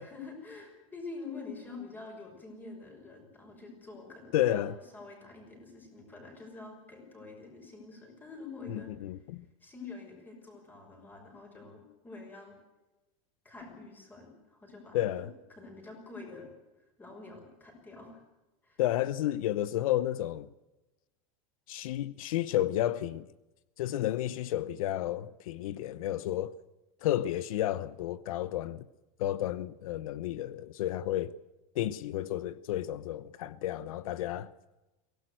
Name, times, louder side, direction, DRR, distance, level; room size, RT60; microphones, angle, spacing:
voice 1, 0.0-8.9 9.6-12.6 13.4-15.3 15.6-16.5 17.0-18.2 18.6-18.8, left 3 dB, 10° left, 6.0 m, -46 dB
voice 2, 4.3-4.7 8.7-9.4 14.9-15.3 18.8-20.5 21.7-23.3 23.8-26.6 27.0-28.9 29.2-31.3 31.7-34.5, left 13 dB, 80° left, 0.9 m, -31 dB
23.5 x 17.5 x 7.9 m
supercardioid pair, 170°, 18 cm